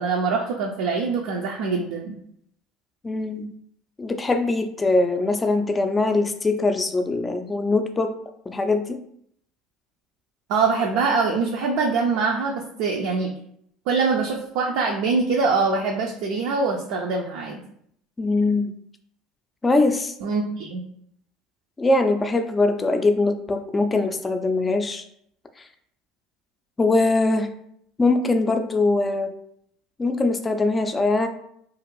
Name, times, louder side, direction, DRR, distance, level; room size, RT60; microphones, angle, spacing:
voice 1, 0.0-2.2 10.5-13.3 13.9-17.6 20.2-20.8, right 4 dB, 70° right, 0 dB, 0.4 m, -23 dB
voice 2, 3.0-3.5 4.0-8.1 8.5-9.0 18.2-18.7 19.6-20.1 21.8-25.0 26.8-27.5 28.0-29.3 30.0-31.3, left 2 dB, 20° left, 7 dB, 0.4 m, -22 dB
2.5 x 2.4 x 3.0 m, 0.70 s
hypercardioid pair, 75°, 0 cm